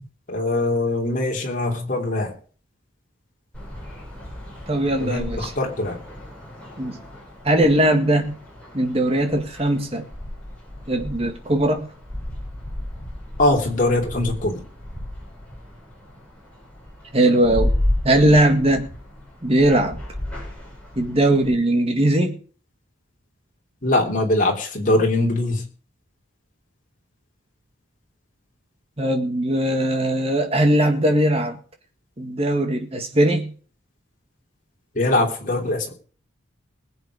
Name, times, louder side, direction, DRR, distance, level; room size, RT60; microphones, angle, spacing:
voice 1, 0.3-2.3 5.0-6.0 13.4-14.6 23.8-25.6 34.9-35.9, left 2 dB, 40° left, 3.2 m, -22 dB
sound 1, 3.5-21.5, left 1 dB, 5° left, 6.2 m, -33 dB
voice 2, 4.7-5.5 6.8-7.0 7.4-8.3 8.7-10.1 10.9-11.9 17.1-17.7 18.0-18.9 19.4-20.0 21.0-22.4 29.0-31.6 32.2-33.5, right 1 dB, 30° right, 1.9 m, -19 dB
20.5 x 8.2 x 5.0 m
head